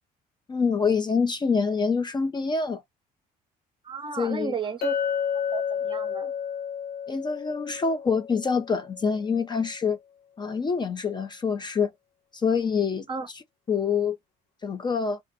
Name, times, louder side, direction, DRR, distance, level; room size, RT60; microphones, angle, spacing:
voice 1, 0.5-2.8 4.1-4.5 7.1-10.0 10.4-11.9 12.3-13.1 13.7-14.2 14.6-15.2, left 5 dB, 25° left, 0.5 m, -26 dB
voice 2, 3.8-4.9 5.5-6.3 13.1-13.3, right 5 dB, 30° right, 0.7 m, -33 dB
Chink clink, 4.8-9.1, left 8 dB, 85° left, 0.7 m, -31 dB
2.5 x 2.3 x 2.5 m
cardioid pair, 110°, 17 cm